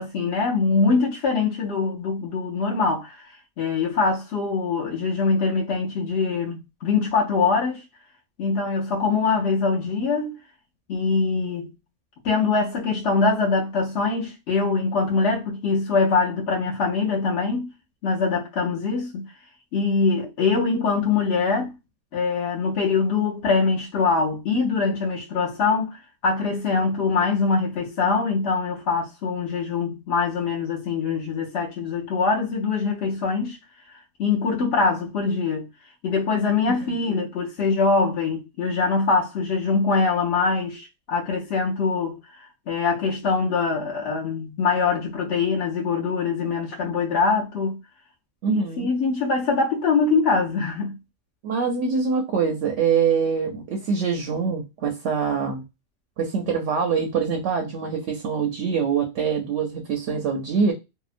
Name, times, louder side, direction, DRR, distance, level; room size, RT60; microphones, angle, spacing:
voice 1, 0.0-3.3 3.6-7.8 8.4-10.4 10.9-11.7 12.2-17.7 18.0-19.3 19.7-21.8 22.1-33.6 34.2-35.7 36.0-47.8 48.5-51.0, left 4 dB, 60° left, 0.8 m, -23 dB
voice 2, 48.4-48.9 51.4-55.6 56.2-60.7, right 6 dB, 65° right, 0.8 m, -24 dB
2.8 x 2.1 x 2.4 m
omnidirectional pair, 1.5 m